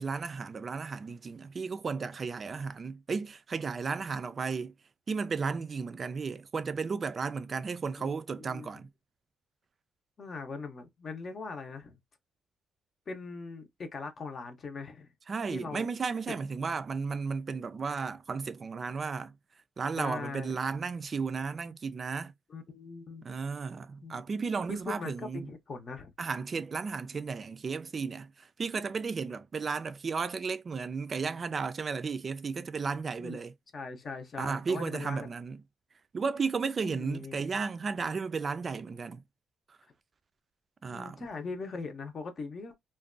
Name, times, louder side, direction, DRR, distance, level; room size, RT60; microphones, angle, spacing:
voice 1, 0.0-4.7 5.1-8.9 15.3-19.3 19.8-22.3 23.2-25.5 26.2-33.5 34.4-35.6 36.1-39.2 39.7-39.8 40.8-41.2, right 5 dB, 40° right, 0.3 m, -34 dB
voice 2, 8.0-8.7 10.2-12.0 13.1-15.1 15.5-15.9 16.3-16.4 20.0-20.5 22.5-23.2 24.0-24.2 24.7-26.1 33.2-33.4 33.7-35.3 36.8-37.4 40.9-42.8, left 4 dB, 45° left, 0.6 m, -40 dB
2.5 x 2.2 x 2.4 m
cardioid pair, 90°, 0 cm